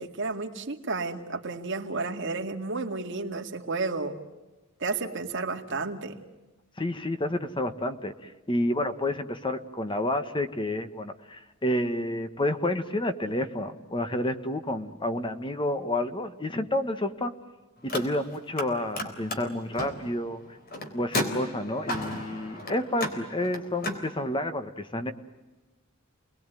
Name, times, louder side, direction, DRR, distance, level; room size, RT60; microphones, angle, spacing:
voice 1, 0.0-4.1 4.8-6.2, right 3 dB, 60° right, 4 dB, 2.2 m, -32 dB
voice 2, 6.8-17.3 17.8-20.4 20.9-25.1, left 1 dB, 25° left, 9 dB, 1.4 m, -30 dB
Car, 17.8-18.7 18.9-24.0, left 1 dB, 45° left, 3.7 m, -34 dB
30.0 x 21.0 x 9.2 m, 1.2 s
head